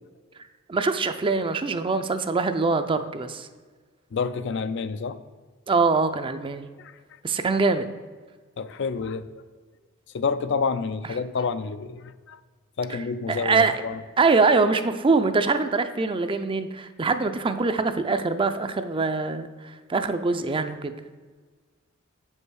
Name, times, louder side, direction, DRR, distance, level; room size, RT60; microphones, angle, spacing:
voice 1, 0.7-3.5 5.7-6.7 7.2-7.9 12.9-13.0 13.3-13.8 14.2-20.9, right 4 dB, 25° right, 9 dB, 0.5 m, -23 dB
voice 2, 4.1-5.2 6.8-6.9 8.6-9.2 10.1-12.4 12.8-14.0, left 5 dB, 60° left, 12 dB, 0.4 m, -28 dB
8.2 x 5.5 x 6.3 m, 1.5 s
head